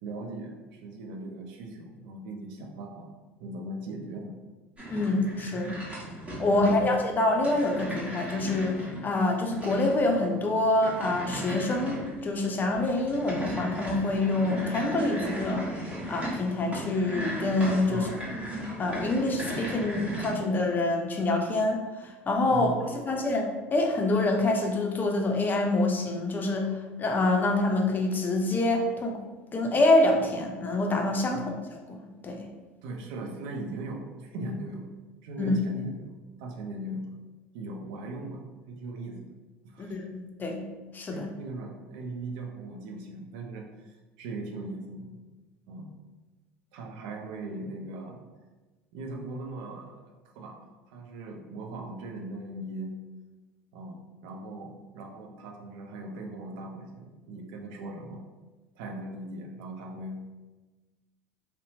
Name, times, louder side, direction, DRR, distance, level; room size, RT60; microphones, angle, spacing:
voice 1, 0.0-3.1 3.4-4.4 5.6-5.8 6.5-6.9 17.9-18.2 22.5-23.1 31.3-31.5 32.8-34.9 35.2-36.1 36.4-37.1 37.5-39.3 39.6-40.0 41.1-45.2 45.7-45.9 46.7-48.2 48.9-50.0 50.3-53.0 53.7-58.2 58.8-60.3, right 2 dB, 65° right, 2 dB, 0.5 m, -39 dB
sound 1, 4.8-20.3, equal, 20° right, 1.0 m, -36 dB
voice 2, 4.9-5.7 6.4-18.1 18.8-22.7 23.0-29.2 29.5-31.4 31.9-32.5 35.4-35.6 39.8-40.7 40.9-41.3, left 2 dB, 30° left, 2 dB, 0.5 m, -26 dB
2.7 x 2.1 x 2.8 m, 1.2 s
hypercardioid pair, 70°, 7 cm